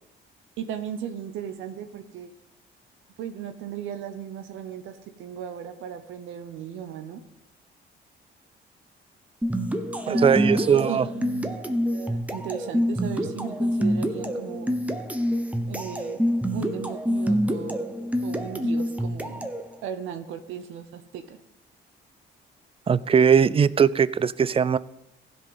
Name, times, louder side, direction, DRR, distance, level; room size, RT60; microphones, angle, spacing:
voice 1, 0.6-2.3 3.2-7.2 10.1-14.8 15.7-16.2 16.5-17.9 18.2-19.5 19.8-21.4, right 9 dB, 90° right, 8 dB, 0.8 m, -36 dB
sound 1, 9.4-19.7, equal, 5° right, 0.9 m, -27 dB
voice 2, 10.1-11.1 22.9-24.8, right 7 dB, 30° right, 18 dB, 0.4 m, -20 dB
15.5 x 5.3 x 5.5 m, 0.87 s
cardioid pair, 90°, 20 cm